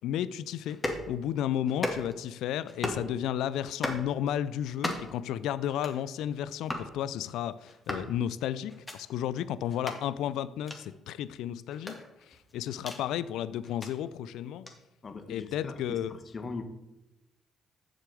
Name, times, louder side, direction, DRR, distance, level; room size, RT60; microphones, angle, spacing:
voice 1, 0.0-0.8 1.1-12.0 12.3-14.7 15.3-16.1, left 10 dB, 70° left, 16 dB, 0.4 m, -33 dB
sound 1, 0.7-1.0 1.7-2.2 2.7-3.1 3.6-4.1 4.7-5.2 5.7-6.0 6.6-6.9 7.7-8.1 8.7-9.0 9.7-10.0 10.6-10.8 11.7-13.0 13.6-13.9 14.6-14.8, left 1 dB, 20° left, 2.2 m, -36 dB
voice 2, 15.0-16.6, left 4 dB, 40° left, 7 dB, 1.4 m, -40 dB
7.8 x 6.6 x 6.3 m, 0.94 s
hypercardioid pair, 50°, 0 cm